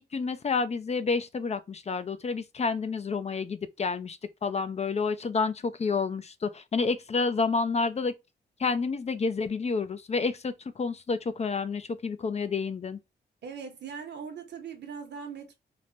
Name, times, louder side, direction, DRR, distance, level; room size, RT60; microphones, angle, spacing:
voice 1, 0.0-8.1 8.6-13.0, left 4 dB, 35° left, 0.4 m, -29 dB
voice 2, 13.4-15.5, right 6 dB, 70° right, 0.9 m, -40 dB
3.1 x 2.1 x 2.5 m
supercardioid pair, 50°, 19 cm